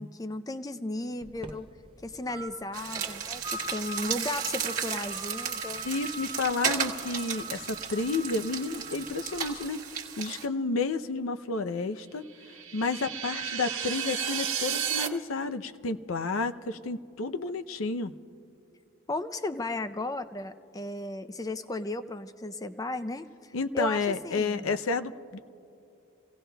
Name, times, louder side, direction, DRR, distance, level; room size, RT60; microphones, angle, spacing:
voice 1, 0.0-1.7 2.0-3.4 3.7-5.8 19.1-24.7, left 2 dB, 15° left, 10 dB, 0.4 m, -35 dB
sound 1, 1.2-9.7, right 1 dB, 25° right, 0.6 m, -43 dB
sound 2, 2.7-10.4, right 7 dB, 40° right, 1.3 m, -34 dB
voice 2, 5.8-9.8 10.2-12.2 12.7-18.1 23.5-25.4, left 3 dB, 80° left, 10 dB, 0.6 m, -31 dB
sound 3, 12.3-15.1, right 9 dB, 75° right, 1.3 m, -32 dB
28.5 x 17.5 x 2.3 m, 2.8 s
head